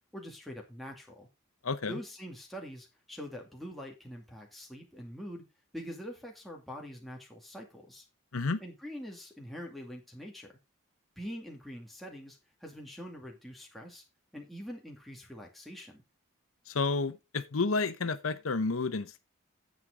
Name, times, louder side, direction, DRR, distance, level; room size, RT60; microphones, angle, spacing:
voice 1, 0.1-1.3 1.9-5.4 5.7-8.0 8.6-10.6 11.2-14.0 14.3-16.0, equal, ahead, 2.3 m, -44 dB
voice 2, 16.7-19.2, left 3 dB, 80° left, 0.8 m, -30 dB
9.6 x 7.5 x 3.7 m
head